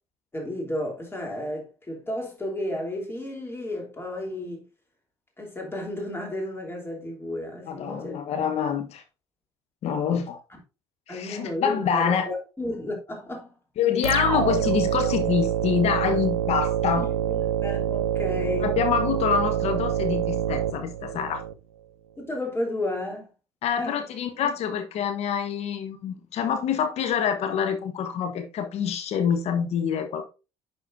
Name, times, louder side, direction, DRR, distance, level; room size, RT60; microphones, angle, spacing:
voice 1, 0.3-4.6 5.4-8.2 11.1-13.6 17.0-18.8 22.2-23.3 23.8-24.1 24.4-24.5, left 1 dB, 15° left, 3.3 m, -32 dB
voice 2, 7.7-9.0 9.8-10.4 11.1-12.3 13.8-17.1 18.6-21.4 23.6-30.3, left 7 dB, 55° left, 1.1 m, -26 dB
sound 1, 14.0-21.5, right 10 dB, 85° right, 0.4 m, -26 dB
11.0 x 4.3 x 2.6 m
hypercardioid pair, 55°, 13 cm